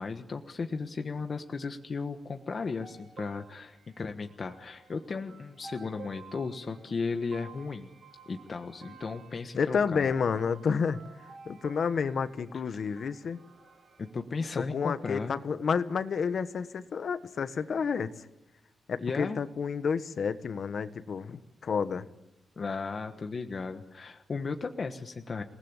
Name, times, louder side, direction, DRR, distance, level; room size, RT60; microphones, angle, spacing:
voice 1, 0.0-7.9 8.3-10.1 12.7-12.8 14.0-15.4 19.0-19.4 22.6-25.4, left 4 dB, 35° left, 6 dB, 1.3 m, -35 dB
sound 1, 2.8-14.1, right 5 dB, 65° right, 7.3 m, -53 dB
voice 2, 9.6-11.0 11.4-13.4 14.6-18.3 18.9-22.0, left 6 dB, 50° left, 12 dB, 1.3 m, -30 dB
28.5 x 19.5 x 9.8 m, 0.93 s
wide cardioid pair, 165°, 0 cm